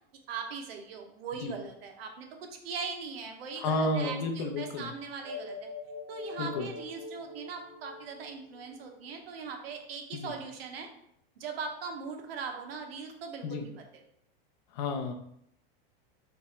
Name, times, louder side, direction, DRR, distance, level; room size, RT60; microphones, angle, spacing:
voice 1, 0.3-5.7 6.1-10.9 11.4-13.8, right 5 dB, 85° right, 3 dB, 0.9 m, -40 dB
voice 2, 3.6-4.9 6.4-6.7 10.1-10.3 13.4-13.7 14.7-15.1, left 2 dB, 50° left, 5 dB, 0.5 m, -31 dB
sound 1, 5.2-9.1, left 3 dB, ahead, 0.8 m, -43 dB
3.4 x 3.0 x 4.1 m, 0.73 s
supercardioid pair, 175°, 30 cm